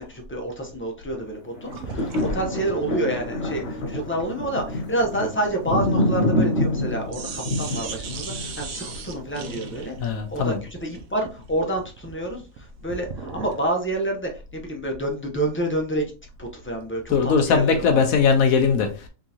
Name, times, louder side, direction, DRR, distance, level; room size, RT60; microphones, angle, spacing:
voice 1, 0.0-10.5 10.8-16.1 16.4-18.1, right 1 dB, 15° left, 0.5 m, -28 dB
sound 1, 1.5-9.8 10.3-10.4, left 1 dB, 60° left, 1.3 m, -27 dB
sound 2, 1.7-6.8 7.1-13.7, right 4 dB, 70° right, 1.1 m, -38 dB
voice 2, 10.0-10.6 17.1-19.1, left 5 dB, 80° left, 1.2 m, -20 dB
3.7 x 3.6 x 2.8 m
omnidirectional pair, 1.5 m